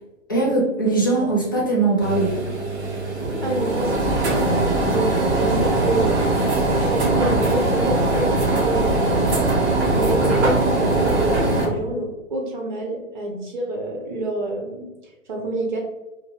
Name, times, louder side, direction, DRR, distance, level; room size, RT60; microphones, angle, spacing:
voice 1, 0.3-2.3, right 3 dB, 20° left, -4 dB, 0.3 m, -20 dB
sound 1, 2.0-11.7, right 2 dB, 50° right, 1.3 m, -21 dB
voice 2, 3.4-4.4 4.9-6.1 6.7-9.4 9.9-15.8, right 2 dB, 35° right, -1 dB, 0.6 m, -27 dB
2.6 x 2.5 x 2.9 m, 1.0 s
figure-of-eight pair, 125°, 40 cm